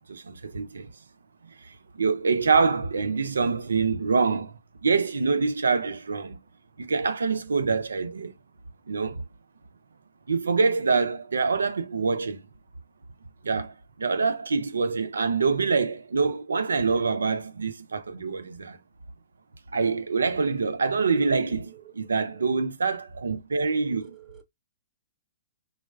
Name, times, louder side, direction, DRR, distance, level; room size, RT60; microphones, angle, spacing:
voice 1, 0.1-0.9 1.9-4.5 4.8-6.4 6.8-8.3 8.9-9.2 10.3-12.4 13.4-18.8 19.7-24.2, right 4 dB, 85° right, 0.4 m, -25 dB
voice 2, 21.7-22.5 23.6-24.4, right 16 dB, 20° right, 0.6 m, -51 dB
3.3 x 2.3 x 2.2 m
hypercardioid pair, 125°, 0 cm